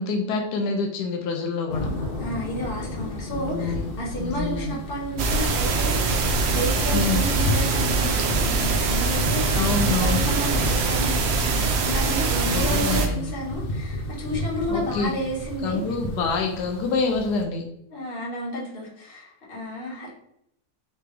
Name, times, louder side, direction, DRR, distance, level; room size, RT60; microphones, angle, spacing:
voice 1, 0.0-1.9 3.4-3.9 4.2-4.8 6.9-7.3 9.5-10.3 12.5-13.3 14.7-15.1 15.6-17.7, left 4 dB, 85° left, 3 dB, 1.2 m, -26 dB
sound 1, 1.7-17.4, left 1 dB, 60° left, 0.6 m, -32 dB
voice 2, 2.2-15.8 17.9-20.1, equal, 35° left, -5 dB, 1.4 m, -32 dB
sound 2, 5.2-13.1, right 4 dB, 70° right, 0.6 m, -23 dB
3.9 x 3.3 x 3.3 m, 0.78 s
omnidirectional pair, 1.7 m